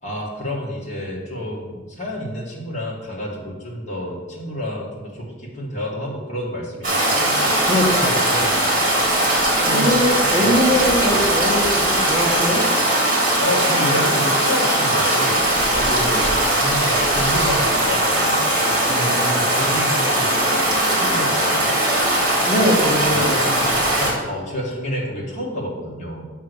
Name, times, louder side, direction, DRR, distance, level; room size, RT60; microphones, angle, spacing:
voice 1, 0.0-7.6 8.7-9.0 9.4-10.0 10.4-10.7 13.4-18.4 19.5-21.8 23.1-23.3 24.3-26.2, left 1 dB, 35° left, -4 dB, 1.9 m, -29 dB
Stream, 6.8-24.1, right 1 dB, 45° right, 2.1 m, -19 dB
voice 2, 7.6-8.6 9.7-12.7 16.0-16.2 18.8-19.5 22.5-24.2, equal, 20° right, -4 dB, 1.0 m, -22 dB
8.1 x 3.6 x 6.3 m, 1.3 s
head